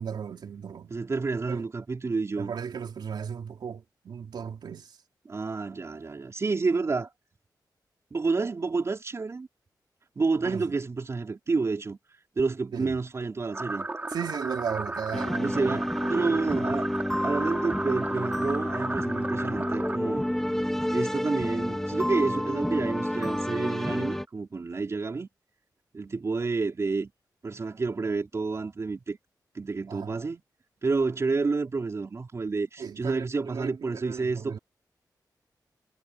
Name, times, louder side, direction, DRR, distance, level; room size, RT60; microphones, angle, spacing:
voice 1, 0.0-0.9 1.5-1.6 2.4-5.0 10.4-10.7 12.7-13.0 14.1-15.7 16.0-16.7 29.9-30.2 32.8-34.6, right 7 dB, 80° right, 3.8 m, -36 dB
voice 2, 0.9-2.5 5.2-7.1 8.1-9.5 10.2-12.0 12.4-13.9 15.4-16.9 17.2-20.2 20.9-25.3 25.9-27.1 27.4-29.2 29.5-30.4 30.8-34.6, right 4 dB, 40° right, 4.6 m, -29 dB
sound 1, 13.5-20.0, right 2 dB, 25° right, 2.8 m, -35 dB
sound 2, 15.1-24.2, equal, 5° left, 3.4 m, -29 dB
wide cardioid pair, 125°, 7 cm